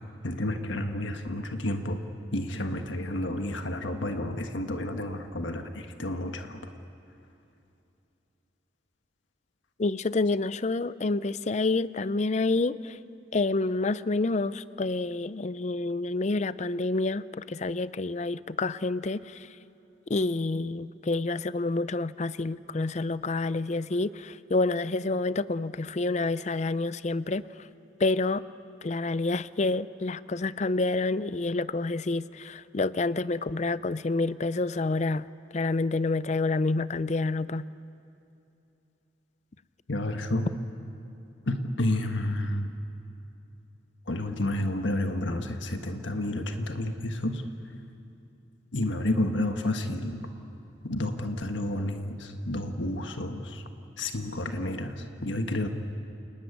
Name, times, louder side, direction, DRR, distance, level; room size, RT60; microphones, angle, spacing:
voice 1, 0.2-2.0 2.3-6.6 39.9-40.5 41.5-42.7 44.1-47.4 48.7-50.2 50.8-53.6 54.0-55.7, left 1 dB, 80° left, 5 dB, 1.4 m, -30 dB
voice 2, 9.8-13.0 13.3-19.5 20.1-27.4 28.0-28.4 28.8-35.3 35.5-37.6, left 3 dB, 40° left, 16 dB, 0.5 m, -28 dB
29.0 x 17.0 x 9.8 m, 2.8 s
head